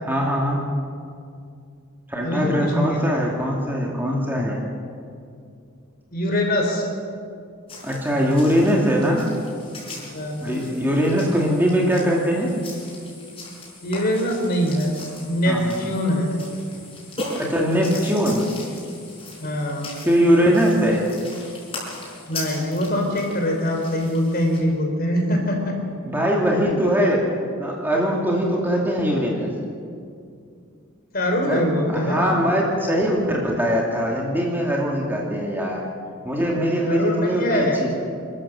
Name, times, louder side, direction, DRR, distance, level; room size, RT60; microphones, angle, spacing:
voice 1, 0.0-0.6 2.1-4.6 7.8-9.3 10.4-12.6 15.5-15.7 17.3-18.5 20.0-21.0 26.0-27.2 27.6-29.5 31.5-35.9 36.2-37.9, equal, 10° right, -2 dB, 2.4 m, -21 dB
voice 2, 2.2-3.0 6.1-6.9 10.1-10.5 13.8-16.3 19.4-19.9 22.3-25.8 26.7-26.8 31.1-32.3 36.9-37.8, equal, 40° left, 2 dB, 3.7 m, -23 dB
sound 1, 7.7-24.6, left 2 dB, 25° left, 6.4 m, -38 dB
27.5 x 13.0 x 7.5 m, 2.4 s
head